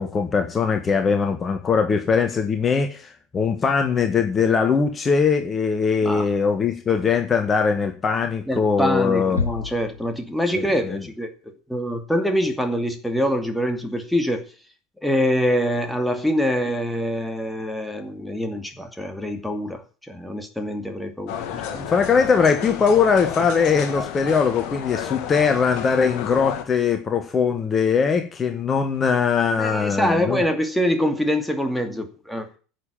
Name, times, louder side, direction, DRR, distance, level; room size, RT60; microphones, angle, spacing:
voice 1, 0.0-9.4 10.5-11.0 21.5-30.4, left 5 dB, 25° left, 1.6 m, -21 dB
voice 2, 8.5-11.3 11.7-14.4 15.0-19.8 20.1-21.4 21.7-22.1 29.6-32.5, equal, ahead, 2.4 m, -24 dB
sound 1, 9.4-10.8, left 5 dB, 80° left, 0.6 m, -30 dB
sound 2, 21.3-26.6, left 9 dB, 50° left, 2.0 m, -32 dB
11.0 x 7.5 x 8.7 m
figure-of-eight pair, 75°, 0 cm